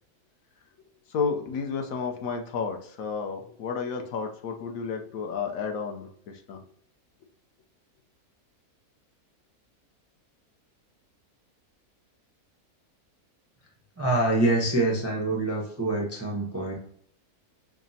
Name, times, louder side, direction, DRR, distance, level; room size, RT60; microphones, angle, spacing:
voice 1, 1.1-6.6, left 5 dB, 70° left, 4 dB, 1.0 m, -32 dB
voice 2, 14.0-16.7, right 2 dB, 25° right, -2 dB, 0.3 m, -25 dB
5.8 x 2.0 x 2.7 m, 0.63 s
omnidirectional pair, 1.6 m